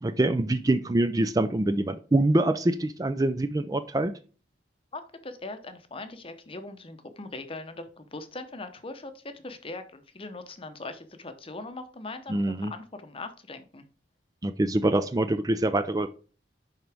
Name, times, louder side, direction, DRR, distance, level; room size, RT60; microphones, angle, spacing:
voice 1, 0.0-4.1 12.3-12.7 14.4-16.1, right 1 dB, 20° right, 10 dB, 0.4 m, -25 dB
voice 2, 4.9-13.8, left 2 dB, 30° left, 9 dB, 0.8 m, -40 dB
10.5 x 3.9 x 3.4 m, 0.37 s
head